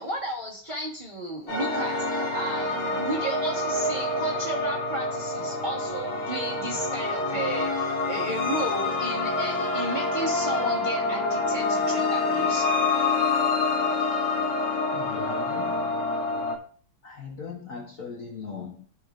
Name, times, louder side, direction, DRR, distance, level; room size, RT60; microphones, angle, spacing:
voice 1, 0.0-12.7, right 1 dB, 25° right, 1.2 m, -33 dB
sound 1, 1.5-16.6, left 3 dB, 80° left, 2.5 m, -27 dB
voice 2, 14.9-16.1 17.0-18.9, left 5 dB, 50° left, 1.2 m, -39 dB
14.0 x 4.7 x 2.5 m
omnidirectional pair, 2.4 m